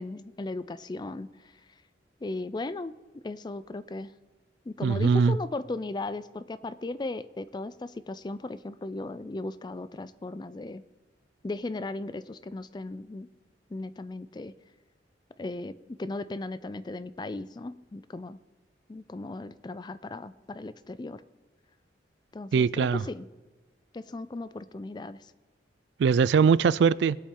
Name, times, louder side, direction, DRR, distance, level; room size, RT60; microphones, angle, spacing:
voice 1, 0.0-1.5 2.2-2.9 3.2-4.1 4.7-10.8 11.4-13.3 13.7-14.5 15.4-18.4 18.9-21.2 22.3-23.3 23.9-25.3, left 2 dB, 25° left, 0.3 m, -37 dB
voice 2, 4.8-5.4 22.5-23.0 26.0-27.2, right 6 dB, 70° right, 0.3 m, -21 dB
20.0 x 8.3 x 3.8 m
head